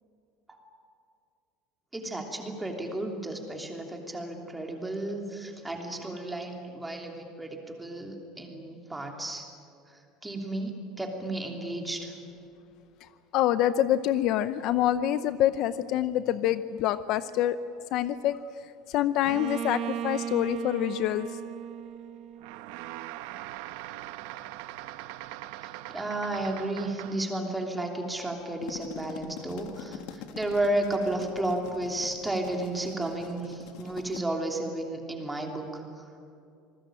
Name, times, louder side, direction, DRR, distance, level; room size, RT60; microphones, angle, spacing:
voice 1, 1.9-9.5 9.9-12.1 25.6-36.1, right 1 dB, 5° right, 2 dB, 3.1 m, -33 dB
voice 2, 13.3-17.6 17.9-18.4 18.9-21.3, left 12 dB, 50° left, 13 dB, 0.7 m, -26 dB
Bowed string instrument, 19.3-23.0, right 10 dB, 45° right, 0.8 m, -37 dB
sound 1, 22.4-27.4, right 15 dB, 75° right, 1.0 m, -41 dB
sound 2, 28.4-34.2, left 8 dB, 70° left, 1.9 m, -44 dB
27.0 x 20.5 x 9.0 m, 2.6 s
cardioid pair, 160°, 0 cm